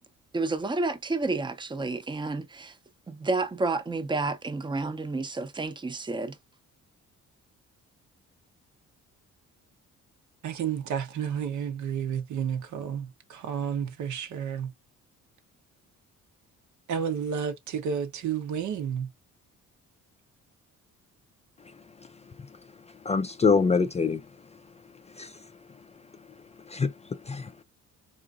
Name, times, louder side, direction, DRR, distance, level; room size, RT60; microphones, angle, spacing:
voice 1, 0.3-2.8 3.1-6.4, right 3 dB, 15° right, 0.6 m, -30 dB
voice 2, 10.4-14.7 16.9-19.1, right 7 dB, 70° right, 0.9 m, -31 dB
voice 3, 23.1-24.2 25.2-25.3 26.7-26.9 27.3-27.6, left 4 dB, 25° left, 0.3 m, -24 dB
3.8 x 2.6 x 2.4 m
cardioid pair, 90°, 30 cm